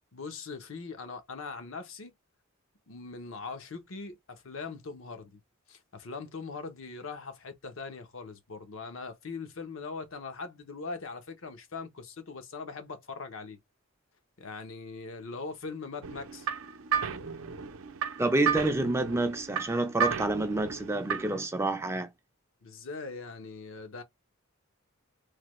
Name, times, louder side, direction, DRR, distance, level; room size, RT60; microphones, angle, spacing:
voice 1, 0.1-2.1 2.9-5.4 5.7-13.6 14.4-16.5 22.6-24.0, left 4 dB, 70° left, 0.8 m, -41 dB
sound 1, 16.0-21.5, right 7 dB, 75° right, 0.5 m, -33 dB
voice 2, 18.2-22.1, right 2 dB, 15° right, 0.4 m, -28 dB
3.3 x 2.2 x 3.0 m
head